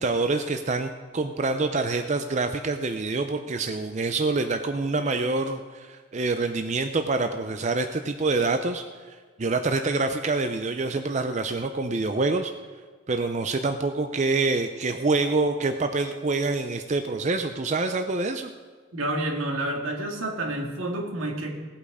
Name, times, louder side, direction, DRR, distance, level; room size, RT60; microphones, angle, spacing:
voice 1, 0.0-12.5 13.1-18.5, right 3 dB, 35° right, 7 dB, 0.5 m, -26 dB
voice 2, 18.9-21.5, right 1 dB, 85° right, 1 dB, 2.0 m, -29 dB
17.5 x 8.4 x 4.9 m, 1.5 s
head